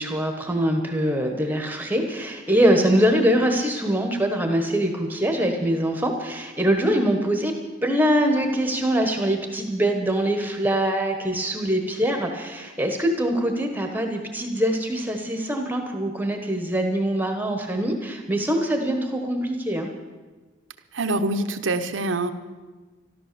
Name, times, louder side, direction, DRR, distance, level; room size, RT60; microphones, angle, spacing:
voice 1, 0.0-7.5 7.8-19.9, equal, 10° right, 4 dB, 1.2 m, -23 dB
voice 2, 20.9-22.3, right 2 dB, 70° right, 9 dB, 1.0 m, -25 dB
13.5 x 12.5 x 6.8 m, 1.3 s
head